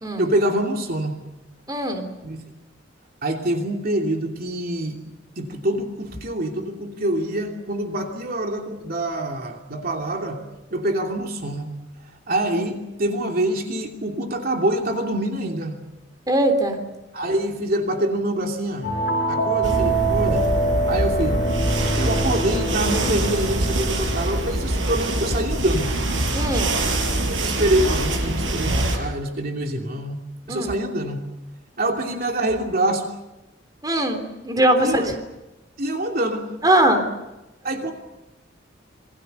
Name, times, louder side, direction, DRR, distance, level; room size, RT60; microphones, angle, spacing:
voice 1, 0.2-1.2 2.2-2.4 3.2-5.0 5.4-10.4 10.7-11.7 12.3-15.8 17.1-18.9 19.3-20.4 20.9-21.4 22.0-25.9 27.3-30.2 30.5-31.2 31.8-33.1 34.8-35.2 35.8-36.5 37.6-37.9, right 1 dB, 50° right, 2 dB, 2.9 m, -25 dB
voice 2, 1.7-2.1 16.3-16.8 26.3-26.7 30.5-30.7 33.8-35.1 36.6-37.0, right 1 dB, 20° right, 6 dB, 3.3 m, -20 dB
sound 1, 18.8-25.3, right 2 dB, 50° left, 5.8 m, -25 dB
sound 2, 19.6-29.0, right 1 dB, 80° right, 4.9 m, -24 dB
27.0 x 22.0 x 6.9 m, 1.0 s
head